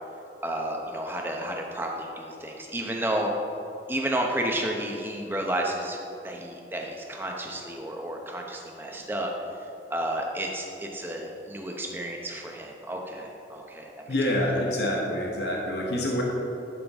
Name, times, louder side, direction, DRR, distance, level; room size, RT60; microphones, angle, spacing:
voice 1, 0.4-3.3 3.9-6.0 6.2-9.3 9.9-14.1, right 1 dB, 10° right, 0 dB, 0.8 m, -31 dB
voice 2, 14.1-16.2, left 1 dB, 70° left, -1 dB, 1.1 m, -26 dB
11.0 x 5.8 x 3.6 m, 2.9 s
head